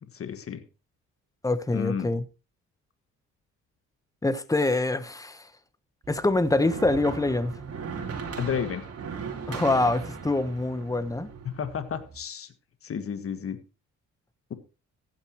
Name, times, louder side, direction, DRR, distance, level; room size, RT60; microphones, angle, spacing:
voice 1, 0.0-0.6 1.7-2.1 8.4-8.9 11.4-12.5 12.8-13.6, left 7 dB, 50° left, 1.5 m, -32 dB
voice 2, 1.4-2.2 4.2-5.5 6.1-7.5 9.5-11.3, left 2 dB, 10° left, 1.1 m, -25 dB
sound 1, 6.0-12.2, right 5 dB, 50° right, 3.0 m, -38 dB
15.0 x 10.0 x 3.1 m
cardioid pair, 90°, 30 cm